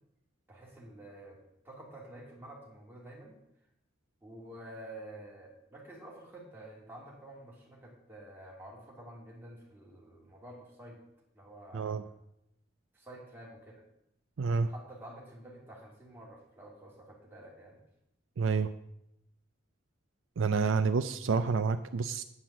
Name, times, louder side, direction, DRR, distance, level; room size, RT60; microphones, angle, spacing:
voice 1, 0.5-1.4 1.6-3.4 4.2-11.0 11.3-12.1 12.9-13.8 14.7-17.8, right 1 dB, 10° right, -3 dB, 2.9 m, -49 dB
voice 2, 14.4-14.7 18.4-18.7 20.4-22.2, right 5 dB, 65° right, 9 dB, 0.5 m, -28 dB
9.6 x 5.9 x 7.4 m, 0.82 s
head